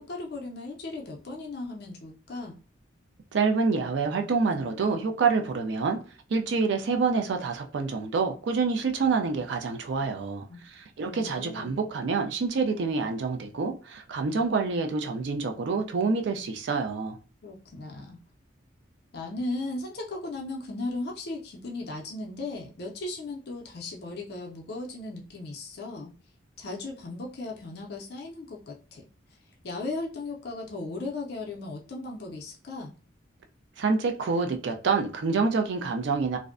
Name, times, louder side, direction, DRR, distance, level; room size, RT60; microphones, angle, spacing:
voice 1, 0.0-2.6 10.5-10.6 11.1-11.8 17.4-18.2 19.1-26.1 26.6-29.1 29.6-32.9, left 2 dB, 55° left, 0.4 m, -36 dB
voice 2, 3.3-6.0 6.3-17.2 33.8-36.4, right 4 dB, 65° right, 0.4 m, -27 dB
2.5 x 2.1 x 2.4 m
head